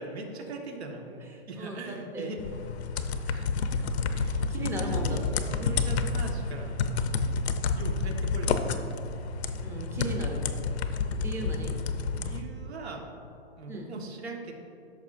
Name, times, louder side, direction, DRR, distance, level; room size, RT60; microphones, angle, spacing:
voice 1, 0.0-2.4 3.3-3.9 4.1-6.8 7.7-8.7 12.2-13.1 13.6-14.5, right 3 dB, 75° right, 2 dB, 1.5 m, -41 dB
voice 2, 1.6-2.4 4.5-5.5 9.6-10.4 11.2-11.7 13.7-13.9, right 2 dB, 10° right, 1 dB, 0.7 m, -36 dB
sound 1, 2.4-12.4, left 4 dB, 80° left, 0.7 m, -30 dB
13.5 x 6.4 x 2.6 m, 2.8 s
hypercardioid pair, 145°, 32 cm